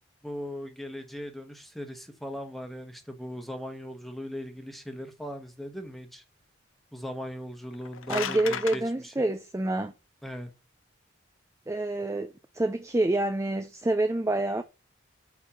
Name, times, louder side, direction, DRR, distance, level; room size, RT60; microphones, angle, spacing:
voice 1, 0.2-6.2 6.9-9.2 10.2-10.5, equal, ahead, 1.2 m, -39 dB
sound 1, 7.6-8.8, left 7 dB, 80° left, 0.7 m, -34 dB
voice 2, 8.1-9.9 11.7-14.6, right 2 dB, 15° right, 0.4 m, -27 dB
8.6 x 3.5 x 5.8 m
head